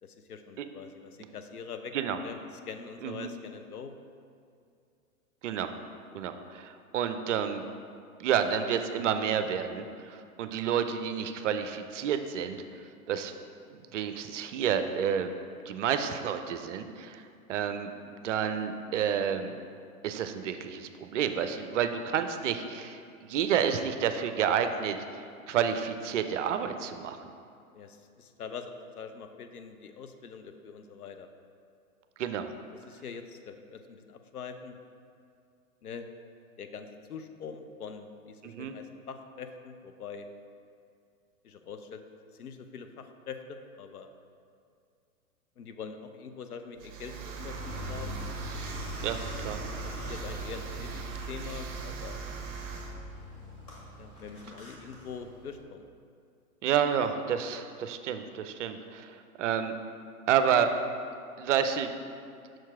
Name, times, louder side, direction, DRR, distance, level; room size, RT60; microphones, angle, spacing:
voice 1, 0.0-1.9 2.2-4.0 27.7-31.3 32.7-34.8 35.8-36.1 36.6-40.3 41.4-42.0 42.3-44.1 45.6-48.2 49.8-52.2 54.0-55.9, left 6 dB, 80° left, 7 dB, 0.7 m, -44 dB
voice 2, 6.1-7.7 8.2-12.6 13.1-13.3 13.7-15.3 15.7-17.2 17.5-17.9 18.2-19.6 20.0-27.3 32.2-32.5 38.4-38.7 49.0-49.2 49.4-49.6 56.6-59.7 60.3-60.7 61.4-61.9, right 8 dB, 55° right, 8 dB, 0.6 m, -30 dB
sound 1, 46.8-52.9, right 5 dB, 30° right, 0.9 m, -39 dB
Car, 47.4-55.6, left 1 dB, 10° left, 0.3 m, -43 dB
6.3 x 4.5 x 4.7 m, 2.4 s
figure-of-eight pair, 110°, 44 cm